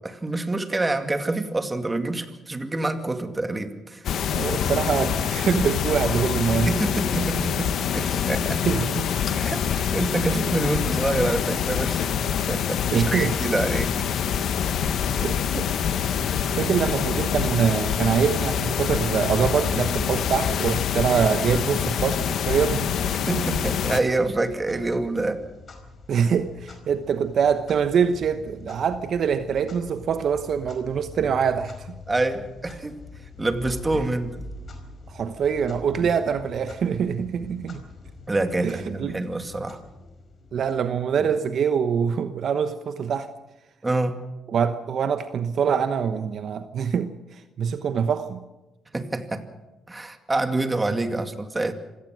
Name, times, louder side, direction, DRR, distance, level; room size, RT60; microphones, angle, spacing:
voice 1, 0.0-4.1 6.5-8.6 9.3-12.1 12.5-13.9 16.6-16.7 23.2-25.4 32.1-33.0 33.4-34.4 36.0-36.1 38.3-39.8 43.8-44.2 48.9-49.4 49.9-51.7, right 2 dB, 20° right, 2.3 m, -27 dB
sound 1, 4.0-24.0, left 8 dB, 70° left, 1.5 m, -25 dB
voice 2, 4.3-6.7 8.7-9.1 10.2-10.5 12.9-13.3 15.1-15.8 16.5-22.9 26.1-31.9 35.1-37.8 38.6-39.2 40.5-43.3 44.5-48.4, right 7 dB, 60° right, 1.1 m, -24 dB
sound 2, 15.5-20.6, left 3 dB, 15° left, 1.7 m, -41 dB
Clock, 22.6-41.4, left 3 dB, 45° left, 4.8 m, -44 dB
26.0 x 17.0 x 6.4 m
cardioid pair, 90°, 0 cm